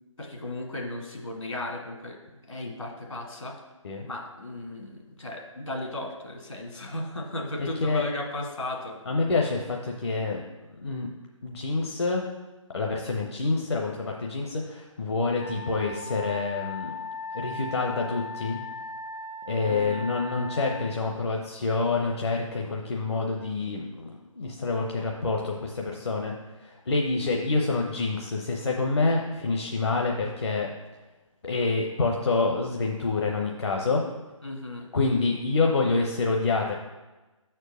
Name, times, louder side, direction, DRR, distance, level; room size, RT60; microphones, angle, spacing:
voice 1, 0.2-2.2 2.5-3.5 4.0-9.0 19.7-20.1 34.4-34.9, left 1 dB, 70° left, 1 dB, 1.7 m, -35 dB
voice 2, 7.6-8.1 9.1-10.4 10.8-11.1 11.4-12.2 12.7-17.0 17.3-18.6 19.5-26.3 26.6-30.7 31.4-34.0 34.9-36.7, left 3 dB, 50° left, 0 dB, 0.8 m, -27 dB
Wind instrument woodwind instrument, 15.4-20.9, left 2 dB, 10° right, 0.4 m, -38 dB
6.4 x 4.5 x 6.2 m, 1.2 s
figure-of-eight pair, 145°, 17 cm